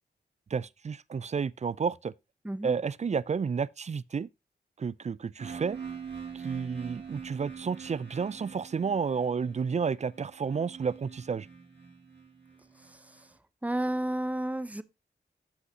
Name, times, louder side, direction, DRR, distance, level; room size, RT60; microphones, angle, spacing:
voice 1, 0.5-2.1 2.6-4.3 4.8-5.8 6.3-11.5, right 6 dB, 40° right, 0.4 m, -31 dB
sound 1, 5.4-13.2, right 6 dB, 70° right, 2.5 m, -44 dB
voice 2, 12.8-13.3 13.6-14.8, right 1 dB, 10° right, 0.7 m, -32 dB
14.0 x 5.6 x 2.7 m
cardioid pair, 60°, 18 cm